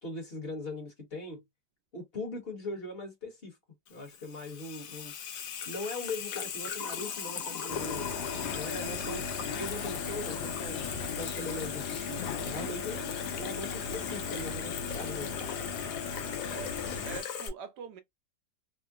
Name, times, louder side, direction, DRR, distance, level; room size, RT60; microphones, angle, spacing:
voice 1, 0.0-1.4 1.9-3.6 3.9-5.1 5.7-8.2 8.5-10.8 11.2-15.3, left 2 dB, 40° left, 1.1 m, -40 dB
Water tap faucet / Sink (filling or washing), 3.9-17.5, left 7 dB, 65° left, 0.9 m, -39 dB
sound 1, 7.7-17.2, left 5 dB, 80° left, 1.4 m, -37 dB
voice 2, 8.9-9.3 16.5-16.8 17.0-18.0, right 7 dB, 70° right, 1.0 m, -44 dB
3.6 x 2.0 x 2.4 m
omnidirectional pair, 2.0 m